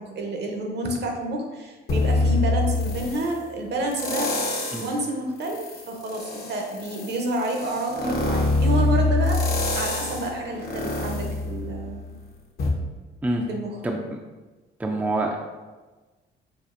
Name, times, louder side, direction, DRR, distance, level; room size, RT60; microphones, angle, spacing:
voice 1, 0.0-4.4 4.8-12.1 13.5-13.8, right 1 dB, 60° right, 2 dB, 0.8 m, -29 dB
sound 1, 1.9-3.3 3.9-5.0 5.4-12.1 12.6-12.7, left 2 dB, 50° left, 0.7 m, -25 dB
voice 2, 14.8-15.4, right 2 dB, 10° right, 1 dB, 0.3 m, -25 dB
5.0 x 2.4 x 2.5 m, 1.3 s
cardioid pair, 90°, 20 cm